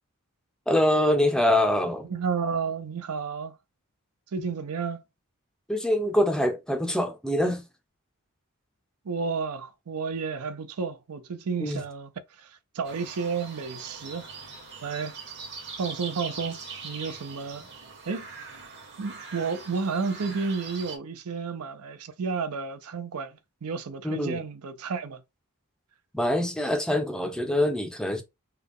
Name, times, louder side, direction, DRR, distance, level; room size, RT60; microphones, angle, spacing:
voice 1, 0.7-2.1 5.7-7.6 11.6-11.8 24.0-24.4 26.1-28.2, left 1 dB, 5° left, 0.5 m, -24 dB
voice 2, 2.1-3.5 4.3-5.0 9.0-12.1 12.4-14.3 14.8-15.2 15.8-17.7 18.1-18.3 19.0-25.2, right 5 dB, 75° right, 0.5 m, -31 dB
sound 1, 12.8-21.0, right 5 dB, 50° right, 1.1 m, -42 dB
3.4 x 2.2 x 3.5 m
head